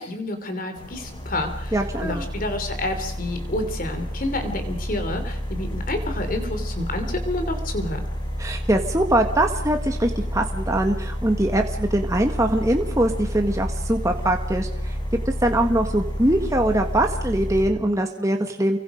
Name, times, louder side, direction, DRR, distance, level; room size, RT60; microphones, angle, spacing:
voice 1, 0.0-8.0, left 1 dB, 40° left, 7 dB, 3.4 m, -29 dB
sound 1, 0.8-17.7, equal, 20° left, 5.5 m, -30 dB
voice 2, 1.7-2.2 8.4-15.0 15.4-18.8, right 1 dB, 15° right, 3 dB, 1.5 m, -22 dB
30.0 x 23.5 x 5.1 m, 0.67 s
head